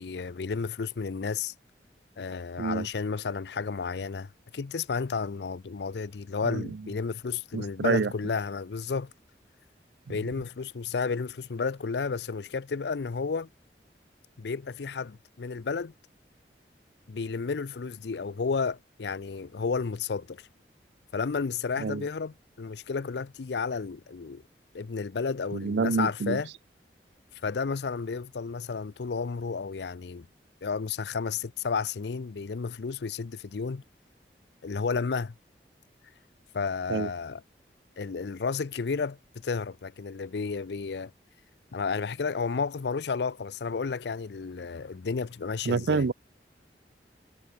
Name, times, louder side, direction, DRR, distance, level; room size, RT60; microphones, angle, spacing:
voice 1, 0.0-1.5 2.2-9.1 10.1-13.5 14.4-15.9 17.1-20.4 21.1-24.4 24.7-26.5 27.4-30.3 30.6-33.8 34.6-35.3 36.5-37.4 38.0-41.1 41.7-46.1, left 5 dB, 80° left, 0.5 m, -32 dB
voice 2, 7.5-8.1 10.1-10.2 21.8-22.0 25.5-26.4 36.9-37.1 45.7-46.1, right 4 dB, 85° right, 0.5 m, -27 dB
head